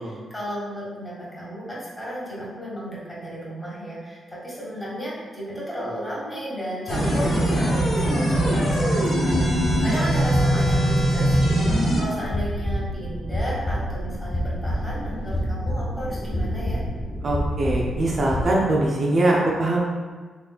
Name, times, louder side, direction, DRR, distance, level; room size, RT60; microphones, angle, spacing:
voice 1, 0.0-16.8, equal, 15° left, -7 dB, 1.5 m, -33 dB
sound 1, 6.9-12.0, right 1 dB, 65° left, 0.9 m, -21 dB
sound 2, 9.3-18.4, equal, 40° left, 0.5 m, -28 dB
voice 2, 17.2-19.8, right 1 dB, 50° right, -3 dB, 0.5 m, -22 dB
3.2 x 3.0 x 2.3 m, 1.4 s
supercardioid pair, 55°, 0 cm